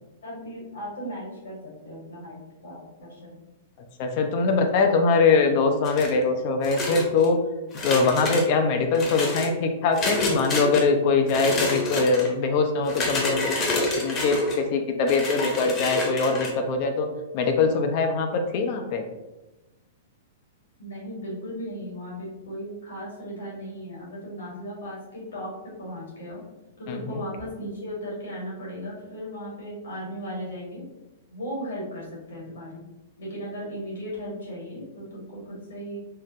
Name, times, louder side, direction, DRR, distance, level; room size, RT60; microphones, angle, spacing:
voice 1, 0.2-3.4 20.8-26.4 26.8-30.8 31.3-32.8 33.2-36.0, equal, 75° left, -4 dB, 1.4 m, -36 dB
voice 2, 4.0-7.4 7.8-17.1 17.3-19.0 26.9-27.2, left 4 dB, 50° left, 4 dB, 0.4 m, -22 dB
sound 1, 5.8-6.2 6.6-7.3 7.7-8.5 8.9-9.5 9.9-10.8 11.2-12.3 12.8-14.6 15.1-16.5, left 2 dB, 30° left, 0.8 m, -28 dB
3.7 x 2.0 x 2.6 m, 1.0 s
hypercardioid pair, 115°, 0 cm